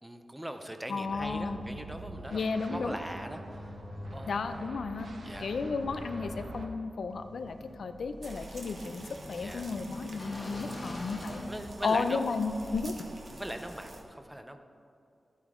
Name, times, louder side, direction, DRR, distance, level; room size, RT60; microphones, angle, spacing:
voice 1, 0.0-3.7 4.1-4.4 5.2-5.5 9.3-9.7 10.7-11.0 11.5-12.2 13.3-14.6, right 1 dB, 10° right, 7 dB, 0.6 m, -41 dB
voice 2, 0.9-1.6 2.3-3.0 4.3-5.1 5.4-9.0 9.3-11.4 11.8-13.0, left 4 dB, 80° left, 9 dB, 0.5 m, -33 dB
sound 1, 1.1-6.7, right 1 dB, 70° right, 1.1 m, -44 dB
sound 2, 5.3-12.3, left 1 dB, 30° left, 1.1 m, -47 dB
sound 3, 8.2-14.0, right 1 dB, 50° right, 1.0 m, -47 dB
12.0 x 8.2 x 3.7 m, 2.6 s
wide cardioid pair, 140°, 0 cm